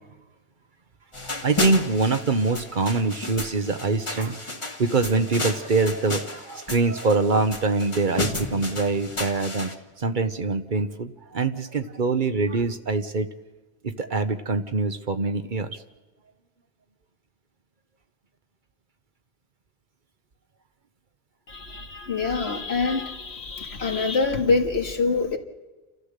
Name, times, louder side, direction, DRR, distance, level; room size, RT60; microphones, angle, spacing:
sound 1, 1.1-9.8, left 2 dB, 30° left, 1.5 m, -33 dB
voice 1, 1.2-4.4 4.8-9.7 10.0-13.3 13.8-15.8, right 3 dB, 50° right, 9 dB, 1.1 m, -24 dB
sound 2, 8.2-10.7, left 1 dB, 70° right, 2.5 m, -39 dB
voice 2, 21.5-25.4, left 4 dB, 80° left, 4 dB, 2.0 m, -25 dB
30.0 x 13.5 x 6.7 m, 1.2 s
omnidirectional pair, 1.1 m